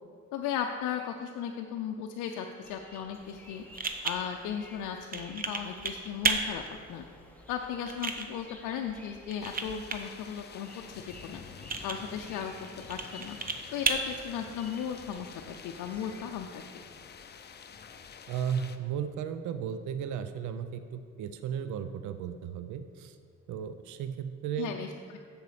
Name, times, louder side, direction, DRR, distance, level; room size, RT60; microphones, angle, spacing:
voice 1, 0.3-3.6 4.0-6.6 6.9-7.0 7.5-10.7 11.2-11.4 11.8-12.5 12.9-13.4 13.7-15.3 15.6-16.8 24.6-25.2, left 8 dB, 90° left, 3 dB, 0.5 m, -36 dB
sound 1, 2.6-16.3, left 1 dB, 5° left, 0.9 m, -53 dB
sound 2, 3.1-15.2, right 4 dB, 30° right, 0.7 m, -36 dB
sound 3, 9.4-18.8, left 6 dB, 35° left, 0.5 m, -49 dB
voice 2, 18.3-23.2 23.5-24.7, right 8 dB, 75° right, 10 dB, 0.5 m, -35 dB
7.1 x 6.7 x 4.9 m, 2.3 s
cardioid pair, 90°, 30 cm